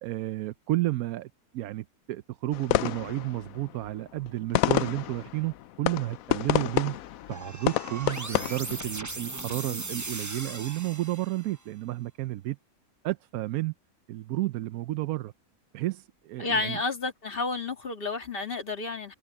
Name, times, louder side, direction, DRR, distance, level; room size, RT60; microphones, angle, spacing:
voice 1, 0.0-7.0 7.3-12.6 13.0-13.7 14.1-15.3 15.7-16.8, right 16 dB, 80° right, 1.0 m, -32 dB
sound 1, 2.5-9.3, left 13 dB, 75° left, 1.0 m, -30 dB
sound 2, 7.3-11.6, right 2 dB, 15° right, 0.7 m, -38 dB
voice 2, 16.4-19.1, left 3 dB, 40° left, 2.1 m, -31 dB
omnidirectional pair, 1.5 m